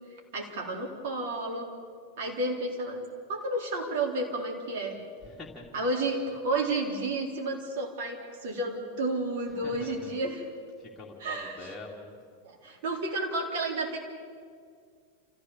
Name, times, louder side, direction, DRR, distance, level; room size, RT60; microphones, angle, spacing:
voice 1, 0.3-1.7 2.2-3.0 3.3-5.0 5.7-10.5 11.2-11.7 12.4-14.0, right 2 dB, 50° right, 1 dB, 3.8 m, -31 dB
voice 2, 5.2-5.8 9.5-10.1 10.8-12.2, left 2 dB, 10° left, -4 dB, 2.8 m, -45 dB
28.0 x 15.0 x 7.1 m, 2.2 s
figure-of-eight pair, 90°, 0 cm